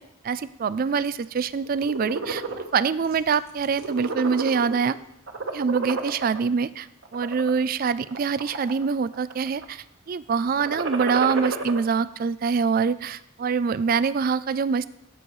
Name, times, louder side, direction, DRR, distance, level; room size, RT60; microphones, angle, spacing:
voice 1, 0.2-5.0 5.5-14.9, right 5 dB, 45° right, 16 dB, 0.3 m, -25 dB
sound 1, 1.7-2.6 3.1-3.3 3.6-4.9 5.3-6.4 7.0-7.5 8.1-8.8 9.1-9.6 10.5-11.8, right 3 dB, 70° right, 1.2 m, -30 dB
16.5 x 6.9 x 3.2 m, 0.79 s
head